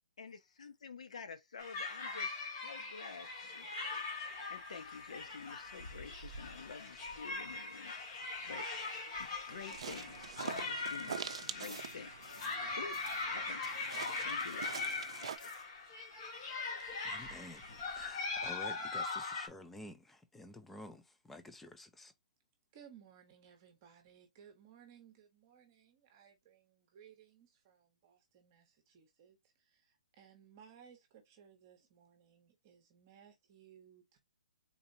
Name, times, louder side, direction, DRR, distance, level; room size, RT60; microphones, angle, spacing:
voice 1, 0.2-4.0 4.5-7.9 8.2-8.7 9.2-13.0 13.3-13.6 14.2-14.8 15.2-15.8, left 5 dB, 65° left, 0.7 m, -50 dB
sound 1, 1.6-19.5, left 3 dB, 30° left, 1.1 m, -41 dB
sound 2, 9.5-15.4, right 7 dB, 50° right, 0.5 m, -45 dB
sound 3, 10.1-12.7 12.9-16.1 16.4-16.5 16.8-16.9 17.1-17.6, left 3 dB, 85° left, 1.8 m, -60 dB
voice 2, 16.9-22.1, left 1 dB, 5° left, 0.4 m, -51 dB
voice 3, 22.7-29.4 29.6-34.2, right 8 dB, 25° right, 1.0 m, -61 dB
3.9 x 2.8 x 2.7 m
hypercardioid pair, 175°, 4 cm